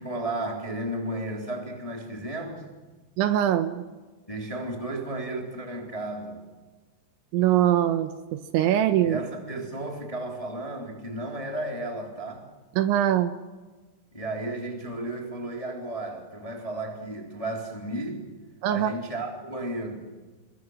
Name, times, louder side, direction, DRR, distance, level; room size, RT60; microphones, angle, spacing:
voice 1, 0.0-2.7 4.3-6.4 9.0-12.5 14.1-18.3 18.7-20.1, right 1 dB, 10° left, 1 dB, 2.1 m, -33 dB
voice 2, 3.2-3.8 7.3-9.2 12.8-13.3 18.6-18.9, right 11 dB, 75° right, 9 dB, 3.1 m, -22 dB
27.5 x 23.0 x 6.4 m, 1.3 s
omnidirectional pair, 5.8 m